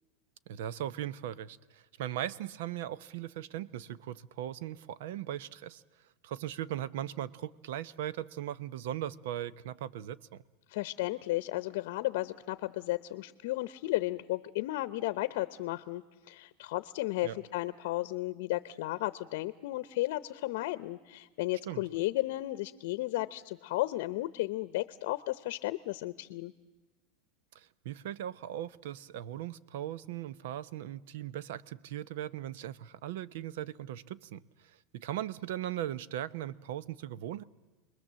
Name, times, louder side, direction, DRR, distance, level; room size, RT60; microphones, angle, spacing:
voice 1, 0.5-5.8 6.2-10.4 17.2-17.4 21.6-21.8 27.5-37.4, right 12 dB, 70° right, 0.7 m, -39 dB
voice 2, 10.7-26.5, left 18 dB, 65° left, 0.8 m, -34 dB
29.0 x 21.5 x 7.5 m
supercardioid pair, 155°, 0 cm